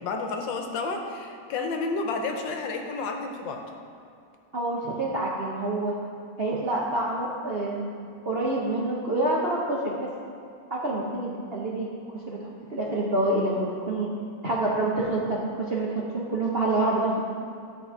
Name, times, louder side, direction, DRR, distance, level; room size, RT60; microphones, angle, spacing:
voice 1, 0.0-3.7, left 3 dB, 80° left, 4 dB, 1.5 m, -31 dB
voice 2, 4.5-5.9 6.4-7.9 8.2-10.0 10.7-11.9 12.3-14.1 14.4-15.4 15.7-17.2, right 2 dB, 50° right, -4 dB, 0.7 m, -27 dB
12.0 x 4.1 x 4.6 m, 2.5 s
omnidirectional pair, 2.0 m